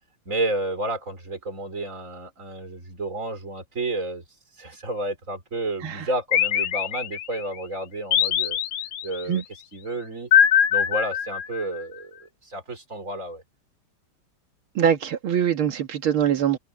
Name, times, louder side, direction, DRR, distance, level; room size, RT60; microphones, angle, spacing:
voice 1, 0.3-4.2 4.6-8.6 9.0-9.4 9.7-10.3 10.7-13.4, right 2 dB, 35° right, 4.8 m, -31 dB
sound 1, 6.3-7.4 8.1-9.2 10.3-11.8, left 9 dB, 75° left, 0.7 m, -22 dB
voice 2, 14.8-16.6, right 9 dB, 85° right, 2.2 m, -23 dB
omnidirectional pair, 2.2 m